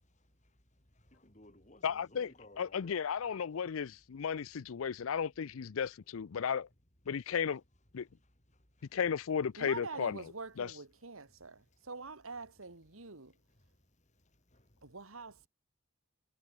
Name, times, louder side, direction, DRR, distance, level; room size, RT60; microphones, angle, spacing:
voice 1, 0.9-2.9 8.8-9.0 13.3-13.7 14.5-14.7, left 1 dB, 35° left, 6.5 m, -59 dB
voice 2, 1.8-6.7 7.1-7.6 7.9-8.1 8.9-10.3 10.6-10.8, left 7 dB, 80° left, 0.5 m, -34 dB
voice 3, 9.6-13.3 14.8-15.5, right 3 dB, 80° right, 2.0 m, -46 dB
head